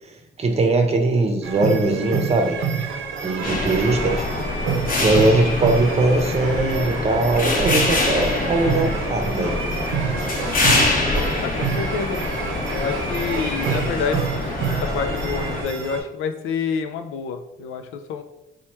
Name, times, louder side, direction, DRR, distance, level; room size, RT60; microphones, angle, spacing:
voice 1, 0.4-2.6 3.2-4.2 5.0-9.6, right 2 dB, 30° right, 4 dB, 0.7 m, -20 dB
sound 1, 1.4-16.0, right 5 dB, 75° right, 0.7 m, -28 dB
sound 2, 3.4-15.6, left 2 dB, 45° left, 0.8 m, -25 dB
voice 2, 11.4-14.4 14.8-18.2, left 6 dB, 85° left, 7 dB, 0.4 m, -28 dB
3.1 x 2.3 x 4.3 m, 0.92 s
cardioid pair, 90°, 20 cm